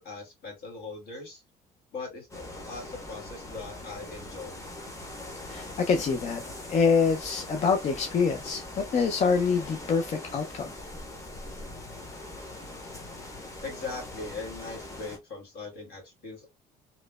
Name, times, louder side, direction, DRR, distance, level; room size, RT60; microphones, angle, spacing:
voice 1, 0.0-1.4 1.9-4.6 13.6-16.5, left 3 dB, 70° left, 1.4 m, -40 dB
sound 1, 2.3-15.2, left 2 dB, 20° left, 0.8 m, -42 dB
voice 2, 5.5-6.4 6.7-10.7, left 5 dB, 40° left, 0.4 m, -25 dB
3.0 x 2.0 x 2.2 m
cardioid pair, 110°, 17 cm